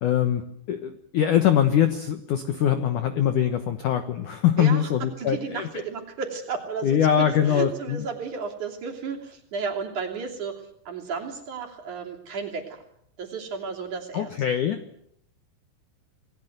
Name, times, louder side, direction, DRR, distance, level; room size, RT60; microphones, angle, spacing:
voice 1, 0.0-5.7 6.8-8.1 14.1-14.8, left 9 dB, 85° left, 9 dB, 1.7 m, -23 dB
voice 2, 4.6-12.8 13.2-14.5, right 5 dB, 45° right, 1 dB, 4.0 m, -33 dB
28.0 x 20.0 x 8.0 m, 0.71 s
omnidirectional pair, 5.6 m